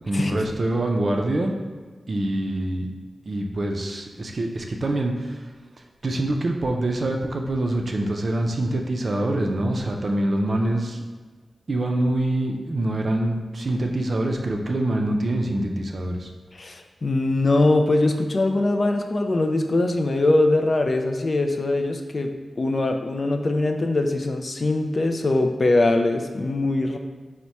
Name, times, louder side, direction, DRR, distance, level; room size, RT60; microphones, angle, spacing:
voice 1, 0.0-1.5 2.1-2.9 3.3-5.4 6.0-11.0 11.7-16.3, right 1 dB, 50° right, 2 dB, 0.4 m, -25 dB
voice 2, 16.5-27.0, left 2 dB, 45° left, 5 dB, 0.3 m, -22 dB
4.5 x 2.1 x 4.1 m, 1.4 s
wide cardioid pair, 110°, 0 cm